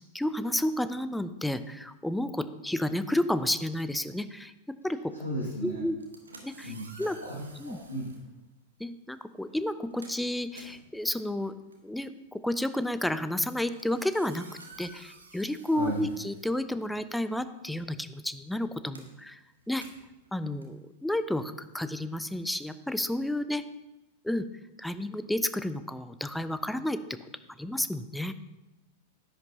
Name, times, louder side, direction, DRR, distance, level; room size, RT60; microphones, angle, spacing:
voice 1, 0.1-4.5 4.8-5.1 5.6-6.0 6.4-7.2 7.6-7.8 8.8-11.5 11.8-14.5 14.8-19.4 19.7-19.8 20.3-23.6 24.2-24.5 24.8-27.0 27.6-28.3, left 1 dB, 5° left, 13 dB, 0.4 m, -31 dB
voice 2, 5.2-5.8 6.6-8.1 15.7-16.0, equal, 80° left, -5 dB, 1.9 m, -35 dB
sound 1, 5.9-8.3 9.1-9.3 9.6-17.2 17.4-22.1, right 3 dB, 75° right, 1.2 m, -53 dB
10.5 x 9.0 x 2.8 m, 0.99 s
figure-of-eight pair, 95°, 0 cm